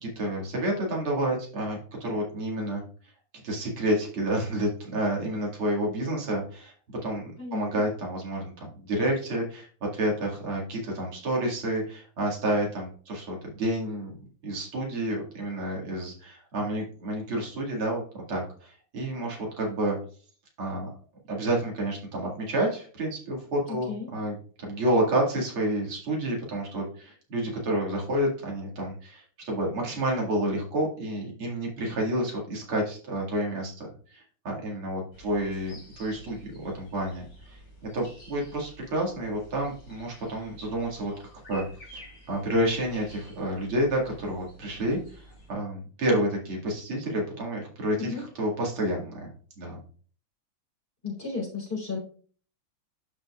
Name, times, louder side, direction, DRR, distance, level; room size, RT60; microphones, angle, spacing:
voice 1, 0.0-2.8 3.4-6.7 7.0-9.7 9.9-14.1 14.4-20.0 20.6-20.9 21.3-37.6 37.9-41.1 41.5-41.6 41.9-45.2 45.5-49.3 49.6-49.8, right 1 dB, 90° right, -2 dB, 3.0 m, -29 dB
voice 2, 7.4-7.8 23.7-24.1 48.0-48.2 51.0-52.0, left 4 dB, 25° left, -3 dB, 4.1 m, -34 dB
sound 1, 35.1-45.5, equal, 85° left, 3.5 m, -51 dB
12.0 x 5.2 x 2.4 m, 0.43 s
omnidirectional pair, 2.3 m